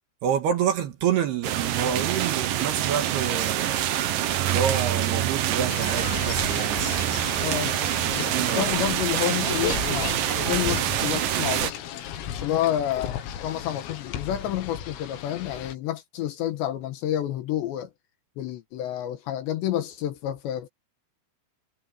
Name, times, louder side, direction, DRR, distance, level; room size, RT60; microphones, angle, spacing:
voice 1, 0.2-7.5 8.0-8.7, right 8 dB, 65° right, 3.0 m, -28 dB
sound 1, 1.4-11.7, right 12 dB, 90° right, 1.9 m, -26 dB
sound 2, 5.7-15.7, left 9 dB, 90° left, 4.7 m, -35 dB
voice 2, 7.4-7.8 8.1-11.7 12.3-17.9 18.4-20.7, left 11 dB, 70° left, 3.1 m, -29 dB
omnidirectional pair, 5.9 m